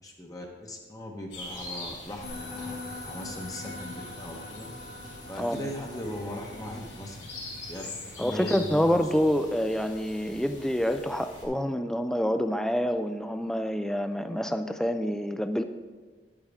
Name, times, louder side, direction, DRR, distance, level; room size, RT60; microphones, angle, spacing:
voice 1, 0.0-2.7 3.0-4.7 5.3-7.2 7.7-7.8 8.2-9.1, left 1 dB, 20° left, 0 dB, 1.0 m, -38 dB
sound 1, 1.3-11.5, left 2 dB, 85° left, 3.1 m, -44 dB
sound 2, 2.2-9.8, left 2 dB, 55° left, 3.0 m, -43 dB
voice 2, 5.4-5.7 8.2-15.6, equal, 5° left, 8 dB, 0.3 m, -27 dB
10.0 x 8.9 x 3.6 m, 1.4 s
head